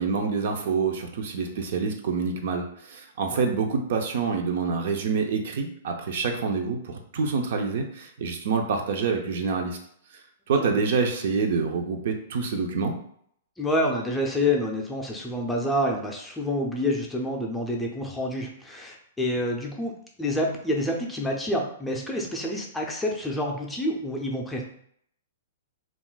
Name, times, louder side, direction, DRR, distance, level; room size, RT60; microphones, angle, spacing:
voice 1, 0.0-9.8 10.5-12.9, right 5 dB, 60° right, 4 dB, 0.5 m, -27 dB
voice 2, 13.6-24.6, left 1 dB, 5° left, 0 dB, 0.5 m, -28 dB
2.4 x 2.1 x 3.8 m, 0.66 s
hypercardioid pair, 140°, 0 cm